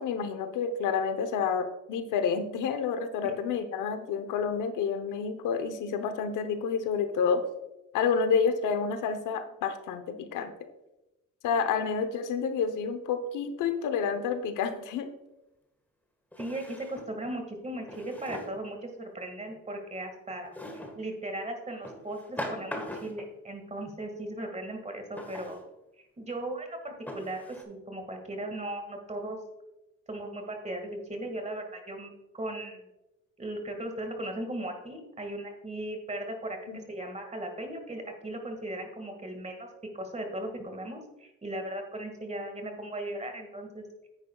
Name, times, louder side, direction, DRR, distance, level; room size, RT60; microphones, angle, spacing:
voice 1, 0.0-7.4 7.9-10.5 11.4-15.1 36.7-36.8, left 6 dB, 85° left, 9 dB, 0.9 m, -29 dB
Drawer open or close, 15.0-15.1 16.3-17.2 17.9-18.7 20.5-21.0 21.8-23.3 25.1-25.6 26.3-26.4 27.1-27.6, left 1 dB, 5° left, 1.6 m, -40 dB
voice 2, 16.4-25.6 26.2-29.4 30.1-32.9 33.4-36.6 36.9-39.7 39.9-44.1, right 1 dB, 20° right, 4 dB, 1.9 m, -37 dB
9.7 x 8.9 x 2.4 m, 0.95 s
cardioid pair, 90°, 30 cm